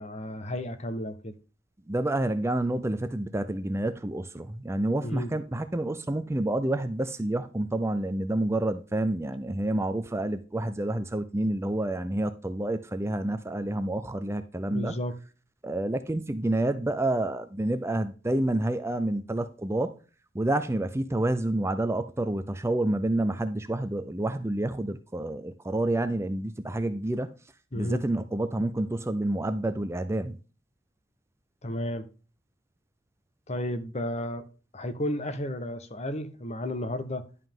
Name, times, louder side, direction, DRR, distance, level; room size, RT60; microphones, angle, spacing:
voice 1, 0.0-1.4 5.0-5.3 14.7-15.1 27.7-28.0 31.6-32.1 33.5-34.5 34.7-37.2, left 1 dB, 35° left, 1.0 m, -33 dB
voice 2, 1.9-15.0 15.6-20.0 20.3-27.3 27.7-30.4, right 1 dB, 15° right, 0.5 m, -28 dB
11.0 x 5.6 x 3.7 m
head